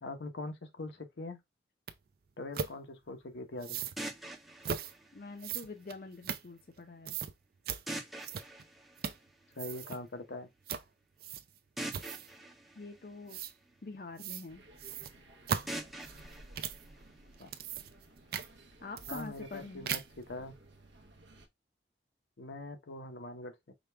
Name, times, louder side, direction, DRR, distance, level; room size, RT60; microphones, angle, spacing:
voice 1, 0.0-1.4 2.4-3.8 9.6-10.5 17.4-17.5 19.1-20.0 20.3-20.5 22.4-23.7, left 2 dB, 80° left, 0.8 m, -42 dB
sound 1, 1.9-2.0 2.5-2.7 3.6-4.0 4.6-4.9 5.4-6.8 7.1-7.3 7.7-7.8 8.2-8.7 9.0-9.3 9.5-10.0 10.7-10.9 11.2-11.6 11.9-12.4 13.3-13.5 14.2-14.5 14.8-16.9 17.3-18.1 18.3-18.5 19.0-19.6 19.9-20.2, right 7 dB, 55° right, 0.4 m, -38 dB
sound 2, 4.0-6.0 7.9-9.8 11.8-14.0 15.7-17.7, right 1 dB, ahead, 0.5 m, -45 dB
voice 2, 5.1-7.2 12.8-13.4 13.8-14.6 18.8-19.9, left 3 dB, 50° left, 0.5 m, -45 dB
sound 3, 14.5-21.5, right 1 dB, 80° right, 0.8 m, -57 dB
5.0 x 2.3 x 3.3 m
head